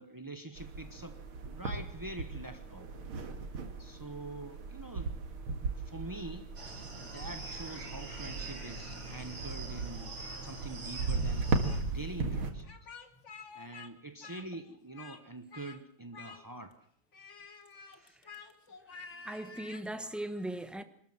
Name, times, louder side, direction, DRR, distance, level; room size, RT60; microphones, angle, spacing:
voice 1, 0.0-2.9 3.8-5.2 5.5-6.5 6.9-11.5 11.9-12.8 13.5-16.9 17.9-18.2, right 2 dB, 35° right, 0.3 m, -45 dB
sound 1, 0.6-12.5, right 4 dB, 85° right, 2.9 m, -37 dB
sound 2, 6.6-11.8, right 3 dB, 60° right, 4.9 m, -44 dB
Speech, 10.2-11.1 11.4-11.8 12.6-13.9 14.2-15.2 15.5-15.8 16.1-16.7 17.1-19.9, left 5 dB, 40° left, 1.6 m, -50 dB
voice 2, 18.9-20.8, right 1 dB, ahead, 0.9 m, -39 dB
26.0 x 13.5 x 7.6 m
omnidirectional pair, 2.3 m